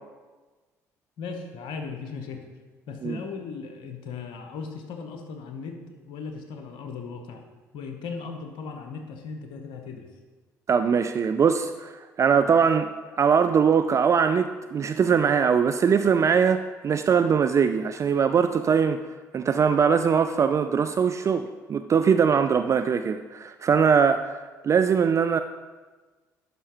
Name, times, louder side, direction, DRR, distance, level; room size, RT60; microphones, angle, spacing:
voice 1, 1.2-2.4 2.9-7.5 7.7-10.1, left 5 dB, 65° left, 5 dB, 1.0 m, -37 dB
voice 2, 10.7-19.0 19.3-25.4, right 6 dB, 35° right, 9 dB, 0.3 m, -22 dB
11.0 x 5.6 x 3.0 m, 1.3 s
hypercardioid pair, 55°, 9 cm